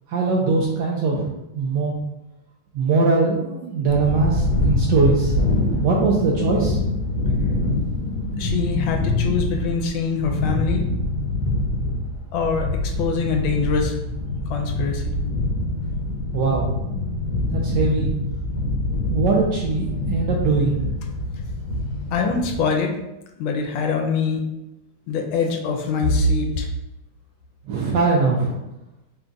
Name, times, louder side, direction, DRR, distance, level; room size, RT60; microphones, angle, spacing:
voice 1, 0.1-1.9 2.7-5.4 5.8-6.8 16.3-16.7 17.5-18.1 19.1-20.8 27.7-28.6, right 3 dB, 75° right, -1 dB, 1.0 m, -21 dB
sound 1, 3.9-22.6, left 2 dB, 60° left, 1.2 m, -25 dB
voice 2, 8.4-10.8 12.3-12.7 13.0-13.9 14.5-15.1 22.1-22.9 23.4-24.4 25.1-26.7, left 4 dB, 75° left, 2 dB, 1.3 m, -23 dB
3.9 x 2.3 x 3.7 m, 0.94 s
omnidirectional pair, 2.3 m